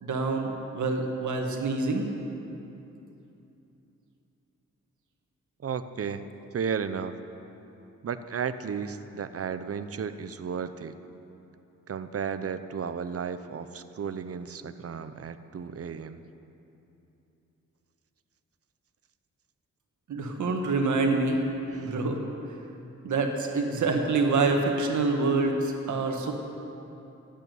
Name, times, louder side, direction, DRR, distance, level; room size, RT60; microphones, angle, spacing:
voice 1, 0.0-2.1 20.1-21.4 21.8-22.2 23.0-26.3, right 3 dB, 80° right, 3 dB, 1.8 m, -26 dB
voice 2, 5.6-7.1 8.0-10.9 11.9-16.2 21.7-22.0, right 6 dB, 50° right, 11 dB, 0.7 m, -34 dB
13.5 x 8.9 x 9.3 m, 2.9 s
cardioid pair, 90°, 29 cm